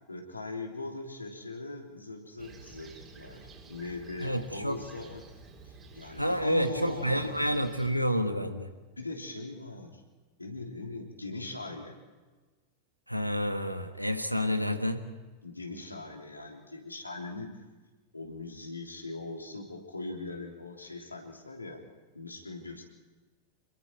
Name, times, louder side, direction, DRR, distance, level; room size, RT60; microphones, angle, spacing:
voice 1, 0.1-3.4 3.7-5.2 5.6-7.4 9.0-10.0 10.4-12.0 15.4-17.5 18.1-21.8 22.1-22.8, left 3 dB, 80° left, 1 dB, 3.4 m, -40 dB
Fixed-wing aircraft airplane, 2.4-7.9, right 4 dB, 25° right, 4.6 m, -51 dB
voice 2, 4.2-4.8 6.2-8.7 13.1-15.0, equal, 90° right, 8 dB, 1.6 m, -29 dB
27.5 x 22.0 x 4.7 m, 1.3 s
figure-of-eight pair, 90°, 0 cm